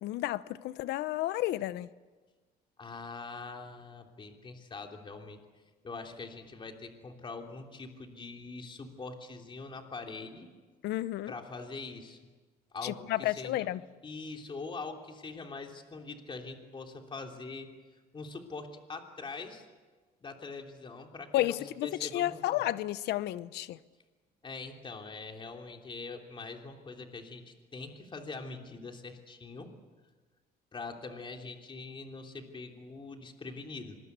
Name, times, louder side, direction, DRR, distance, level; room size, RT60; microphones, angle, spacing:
voice 1, 0.0-1.9 10.8-11.3 12.8-13.8 21.3-23.8, left 15 dB, 80° left, 0.9 m, -32 dB
voice 2, 2.8-5.4 5.8-10.5 11.3-12.2 12.7-13.7 14.0-17.7 18.1-19.6 20.2-22.4 24.4-29.7 30.7-34.0, left 3 dB, 30° left, 3.2 m, -43 dB
26.0 x 21.0 x 8.2 m
cardioid pair, 110°, 17 cm